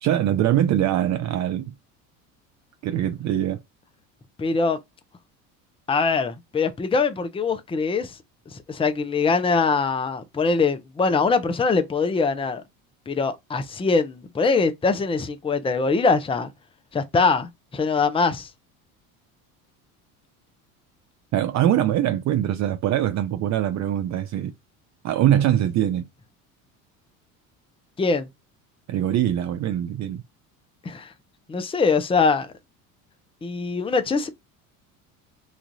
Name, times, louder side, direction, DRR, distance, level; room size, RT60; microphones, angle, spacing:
voice 1, 0.0-1.7 2.8-3.6 21.3-24.5 25.0-26.0 28.9-30.2, right 11 dB, 40° right, 0.5 m, -22 dB
voice 2, 4.4-4.8 5.9-8.2 8.5-12.6 13.1-16.5 16.9-18.5 28.0-28.3 30.8-31.1 31.5-32.5 33.4-34.3, left 4 dB, 15° left, 0.6 m, -23 dB
3.1 x 2.4 x 3.9 m
supercardioid pair, 85°, 42 cm